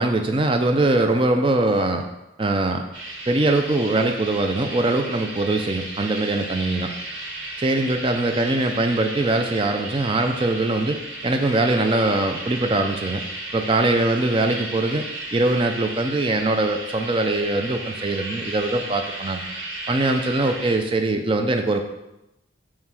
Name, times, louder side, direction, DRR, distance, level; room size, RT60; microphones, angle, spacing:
voice 1, 0.0-2.0 2.4-2.8 3.3-6.9 7.6-11.0 11.2-13.2 13.5-15.1 15.3-19.4 19.9-21.8, right 2 dB, 25° right, 5 dB, 0.4 m, -22 dB
sound 1, 2.9-20.8, right 2 dB, 70° right, 2.2 m, -34 dB
7.3 x 3.2 x 6.1 m, 0.89 s
head